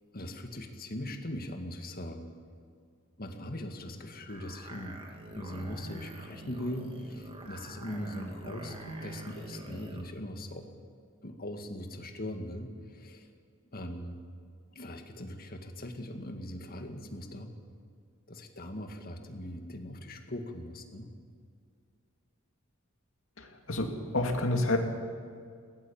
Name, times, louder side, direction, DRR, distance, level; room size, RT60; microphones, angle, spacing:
voice 1, 0.1-2.3 3.2-5.0 5.3-10.6 11.2-13.3 13.7-14.2 14.7-17.5 18.3-21.1, left 1 dB, 45° left, 5 dB, 2.1 m, -40 dB
sound 1, 4.3-10.1, right 1 dB, 25° right, 2.4 m, -45 dB
voice 2, 23.4-24.8, left 2 dB, 70° left, 3 dB, 2.6 m, -29 dB
21.5 x 17.5 x 7.2 m, 2.2 s
head